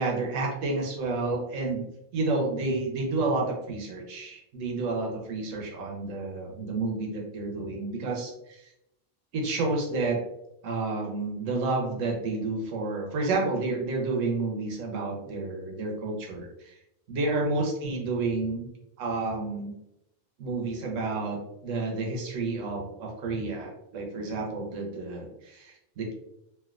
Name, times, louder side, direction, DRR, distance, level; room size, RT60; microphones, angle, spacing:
voice 1, 0.0-1.9 2.1-8.7 9.3-10.2 10.6-16.7 17.1-18.7 19.0-19.8 20.4-26.1, right 3 dB, 90° right, 0 dB, 1.1 m, -30 dB
3.3 x 2.6 x 2.4 m, 0.83 s
omnidirectional pair, 1.3 m